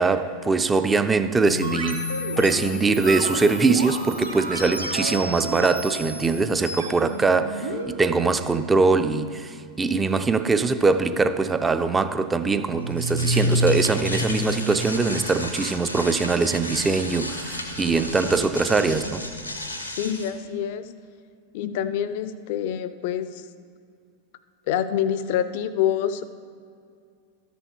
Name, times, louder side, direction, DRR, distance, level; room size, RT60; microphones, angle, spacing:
voice 1, 0.0-2.1 2.4-19.2, right 4 dB, 15° right, 0.4 m, -22 dB
sound 1, 1.4-7.9, equal, 85° right, 1.5 m, -31 dB
sound 2, 12.8-20.3, left 1 dB, 90° left, 1.0 m, -29 dB
voice 2, 19.9-20.9 21.5-23.4 24.7-26.2, left 9 dB, 50° left, 0.5 m, -26 dB
13.0 x 6.9 x 4.6 m
figure-of-eight pair, 90°, 0 cm